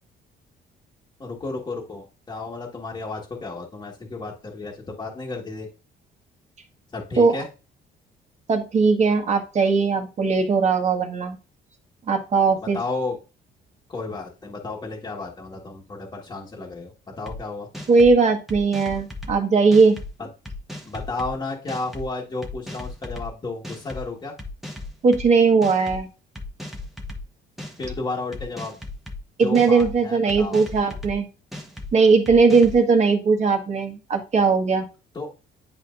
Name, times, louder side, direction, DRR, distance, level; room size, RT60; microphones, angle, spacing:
voice 1, 1.2-5.7 6.9-7.5 12.6-13.2 13.9-17.7 20.2-20.3 20.8-24.3 27.8-28.7 29.4-30.6 35.1-35.3, left 3 dB, 25° left, -2 dB, 1.6 m, -32 dB
voice 2, 8.5-11.4 12.1-12.8 17.9-20.0 25.0-26.1 29.4-31.3 31.9-34.8, right 4 dB, 40° right, 3 dB, 1.6 m, -19 dB
sound 1, 17.3-17.4 17.7-18.1 18.5-19.3 19.7-20.1 20.5-21.3 21.7-22.0 22.4-23.3 23.6-24.0 24.4-25.2 25.6-26.0 26.4-27.2 27.6-27.9 28.3-29.2 29.5-29.9 30.3-31.1 31.5-31.9 32.3-32.8, left 2 dB, ahead, 1.3 m, -36 dB
10.0 x 4.4 x 2.6 m, 0.31 s
cardioid pair, 130°, 18 cm